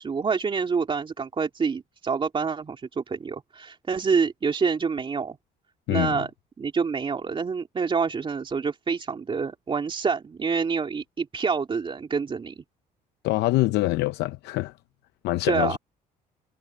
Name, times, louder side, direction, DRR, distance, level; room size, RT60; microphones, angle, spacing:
voice 1, 0.0-5.4 5.9-6.3 6.6-12.6 15.5-15.8, right 5 dB, 30° right, 3.1 m, -27 dB
voice 2, 5.9-6.2 13.2-14.7 15.2-15.8, left 18 dB, 85° left, 0.7 m, -24 dB
cardioid pair, 110°, 17 cm